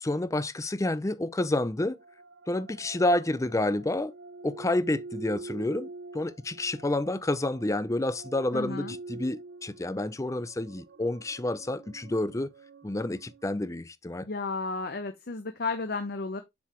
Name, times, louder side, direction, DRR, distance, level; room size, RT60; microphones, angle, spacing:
voice 1, 0.0-2.0 2.5-4.1 4.4-12.5 12.8-14.3, left 1 dB, 15° left, 0.5 m, -29 dB
sound 1, 1.7-13.5, right 3 dB, 60° right, 0.5 m, -46 dB
voice 2, 8.5-9.0 14.3-16.4, left 3 dB, 50° left, 0.8 m, -33 dB
6.9 x 4.7 x 3.0 m
head